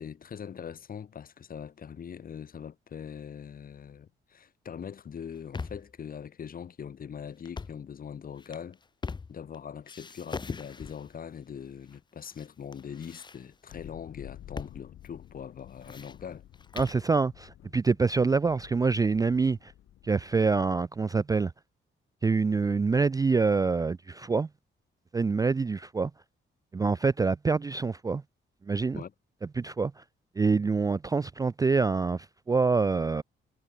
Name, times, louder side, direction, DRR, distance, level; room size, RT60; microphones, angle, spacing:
voice 1, 0.0-8.8 9.3-16.4 28.9-29.1, left 7 dB, 45° left, 1.7 m, -42 dB
sound 1, 5.2-6.0 7.4-7.9 8.4-9.6 9.9-11.2 11.9-12.5 12.7-13.8 14.6-14.8 15.0-15.1 15.6-17.1, left 4 dB, 20° left, 0.7 m, -41 dB
sound 2, 13.7-20.4, left 12 dB, 75° left, 2.3 m, -51 dB
voice 2, 16.8-19.7 20.0-21.5 22.2-24.5 25.1-26.1 26.7-28.2 28.7-29.0 29.6-30.0 30.4-33.2, right 4 dB, 15° right, 0.4 m, -26 dB
cardioid pair, 130°, 21 cm